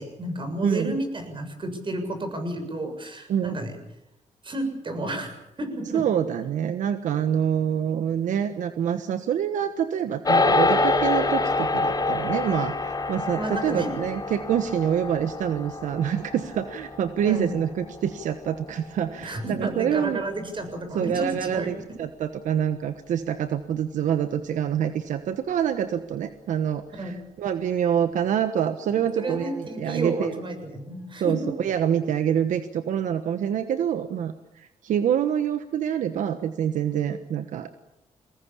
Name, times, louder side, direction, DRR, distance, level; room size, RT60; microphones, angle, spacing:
voice 1, 0.0-3.7 4.4-6.0 13.4-13.9 17.2-17.5 19.2-21.7 26.9-27.2 29.2-31.5, right 1 dB, 40° right, 7 dB, 7.1 m, -31 dB
voice 2, 0.6-1.0 3.3-3.6 5.9-20.2 20.9-30.4 31.2-37.7, right 9 dB, 80° right, 10 dB, 1.3 m, -26 dB
sound 1, 10.2-19.8, left 3 dB, 30° left, 5.6 m, -26 dB
sound 2, 28.8-31.4, equal, 10° right, 4.9 m, -42 dB
23.5 x 19.5 x 8.6 m, 0.86 s
cardioid pair, 80°, 13 cm